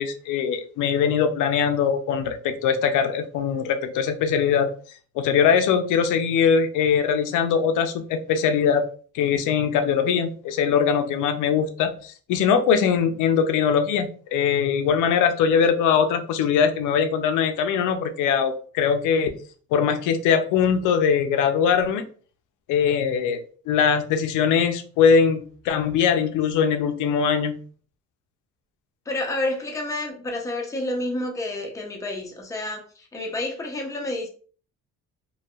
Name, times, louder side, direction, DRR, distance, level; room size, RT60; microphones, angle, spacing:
voice 1, 0.0-4.7 5.2-8.9 9.1-19.3 19.7-22.0 22.7-27.6, left 7 dB, 90° left, 0.5 m, -21 dB
voice 2, 29.1-34.3, left 1 dB, 10° left, 0.6 m, -29 dB
2.6 x 2.2 x 2.3 m
cardioid pair, 90°, 30 cm